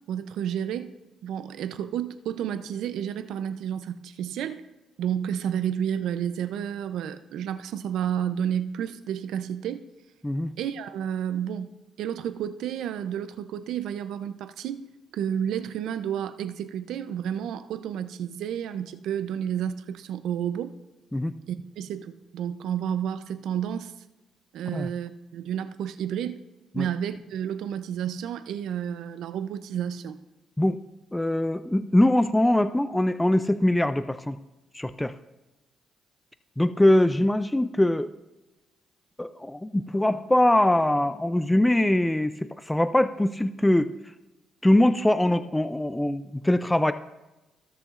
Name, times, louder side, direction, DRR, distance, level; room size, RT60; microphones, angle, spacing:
voice 1, 0.1-1.0 1.2-4.7 5.0-9.8 10.6-14.9 15.1-20.7 21.5-23.9 24.5-26.4 26.7-30.2, right 9 dB, 80° right, 0.5 m, -31 dB
voice 2, 31.1-34.4 34.7-35.1 36.6-38.1 39.2-43.9 44.6-46.9, left 1 dB, 10° left, 0.4 m, -22 dB
18.5 x 6.8 x 2.5 m
cardioid pair, 85°, 0 cm